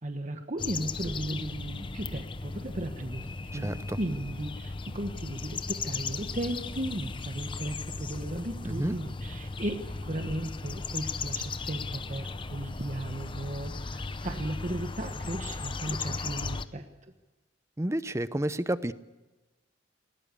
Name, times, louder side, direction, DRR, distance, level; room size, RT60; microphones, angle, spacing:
voice 1, 0.0-16.8, right 1 dB, 40° right, 5 dB, 1.3 m, -36 dB
sound 1, 0.6-16.7, left 4 dB, 25° left, 0.7 m, -37 dB
voice 2, 3.5-4.0 8.6-8.9 17.8-18.9, right 1 dB, 15° right, 14 dB, 0.7 m, -30 dB
20.0 x 19.0 x 8.4 m, 1.1 s
head